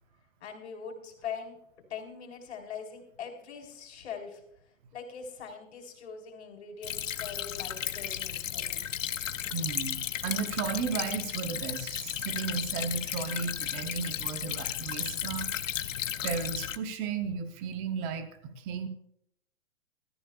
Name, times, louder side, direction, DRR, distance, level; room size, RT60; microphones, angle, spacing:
voice 1, 0.4-1.6 1.9-4.4 4.9-8.9, left 6 dB, 55° left, 2 dB, 4.2 m, -42 dB
Stream / Trickle dribble, 6.8-16.8, left 10 dB, 75° left, 1.0 m, -34 dB
voice 2, 9.5-15.5 16.2-18.9, right 6 dB, 10° right, 9 dB, 0.6 m, -34 dB
20.0 x 14.0 x 2.3 m, 0.70 s
hypercardioid pair, 165°, 39 cm